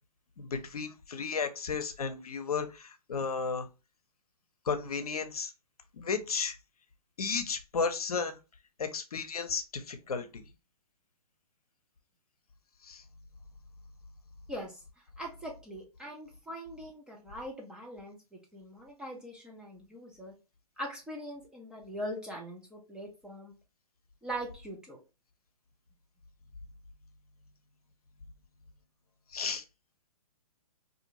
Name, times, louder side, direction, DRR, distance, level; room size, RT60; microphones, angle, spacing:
voice 1, 0.4-3.7 4.7-5.5 5.9-6.6 7.2-8.4 8.8-10.4 12.8-13.0 29.3-29.6, left 5 dB, 70° left, 0.6 m, -33 dB
voice 2, 14.5-14.8 15.2-20.3 20.8-23.5 24.2-25.0, equal, 5° right, 0.4 m, -41 dB
2.5 x 2.5 x 2.9 m
figure-of-eight pair, 125°, 20 cm